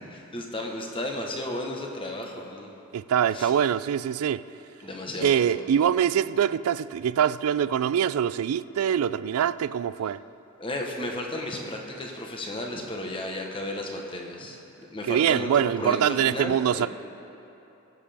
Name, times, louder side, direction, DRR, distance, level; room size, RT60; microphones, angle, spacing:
voice 1, 0.1-2.7 3.3-3.5 4.8-5.4 10.6-16.9, left 1 dB, 25° left, 1.1 m, -34 dB
voice 2, 2.9-4.4 5.2-10.2 15.1-16.9, right 9 dB, 90° right, 0.3 m, -24 dB
21.0 x 7.4 x 3.4 m
head